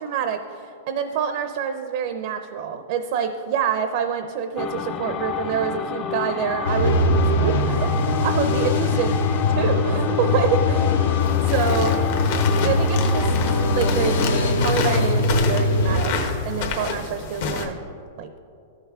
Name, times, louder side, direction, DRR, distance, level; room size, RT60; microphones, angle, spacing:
voice 1, 0.0-7.0 7.4-7.9 8.2-9.2 9.6-11.0 11.4-12.0 12.6-13.3 13.7-16.1 16.5-17.8 18.2-18.3, right 7 dB, 60° right, 8 dB, 0.5 m, -26 dB
sound 1, 4.6-14.4, left 7 dB, 30° left, 0.4 m, -30 dB
sound 2, 6.6-16.0, left 2 dB, 80° left, 0.8 m, -21 dB
sound 3, 11.2-17.7, left 5 dB, 60° left, 1.1 m, -29 dB
13.0 x 5.7 x 3.6 m, 2.6 s
hypercardioid pair, 140°, 0 cm